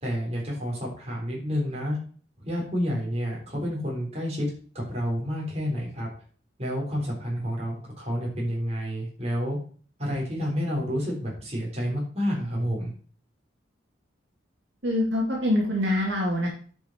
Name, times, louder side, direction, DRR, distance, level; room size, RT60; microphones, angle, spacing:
voice 1, 0.0-2.0 2.4-4.5 4.7-6.1 6.6-9.6 10.0-12.9, equal, 35° right, -3 dB, 3.5 m, -29 dB
voice 2, 14.8-16.5, left 1 dB, 65° right, -3 dB, 2.4 m, -24 dB
10.5 x 5.4 x 4.5 m, 0.43 s
head